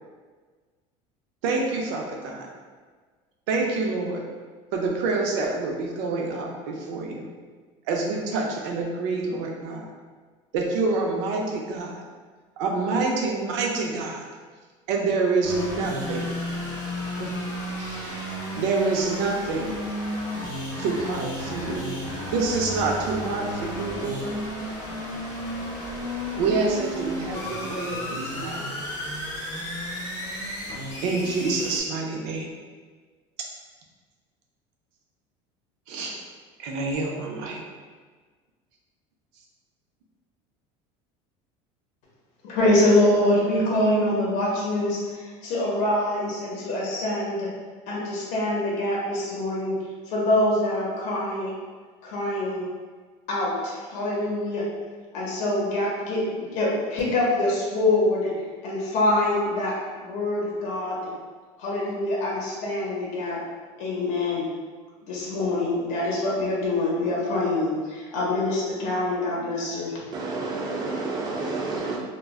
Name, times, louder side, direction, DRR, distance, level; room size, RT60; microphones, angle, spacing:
voice 1, 1.4-2.5 3.5-4.2 4.7-7.3 7.9-9.9 10.5-12.0 12.6-14.3 14.9-16.2 17.2-17.3 17.8-19.7 20.8-21.9 22.3-24.3 26.4-28.7 31.0-32.5 35.9-36.2 36.6-37.6, right 3 dB, 75° right, 0 dB, 0.5 m, -27 dB
sound 1, 15.4-31.8, left 1 dB, 15° left, 0.8 m, -33 dB
voice 2, 42.4-47.5 47.9-51.5 52.0-52.7 53.3-54.6 55.1-61.1 61.6-63.4 63.8-64.5 65.0-70.0, left 1 dB, 50° left, -4 dB, 0.7 m, -25 dB
voice 3, 70.1-72.0, right 3 dB, 30° right, -2 dB, 0.4 m, -29 dB
2.1 x 2.0 x 3.4 m, 1.5 s
cardioid pair, 160°, 15 cm